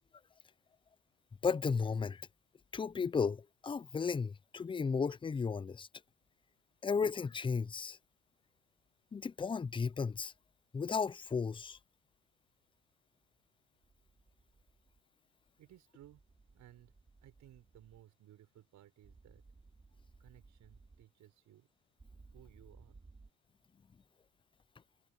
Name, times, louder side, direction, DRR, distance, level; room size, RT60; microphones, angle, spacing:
voice 1, 1.4-2.2 2.7-5.9 6.8-8.0 9.1-10.3 10.7-11.8, left 5 dB, 15° left, 0.5 m, -34 dB
sound 1, 13.8-15.0 16.0-18.0 19.0-21.0 22.0-23.3, right 3 dB, 20° right, 3.9 m, -61 dB
voice 2, 15.6-16.2 16.5-16.9 17.2-19.4 20.2-21.7 22.3-23.0, right 12 dB, 65° right, 6.2 m, -60 dB
supercardioid pair, 90°, 32 cm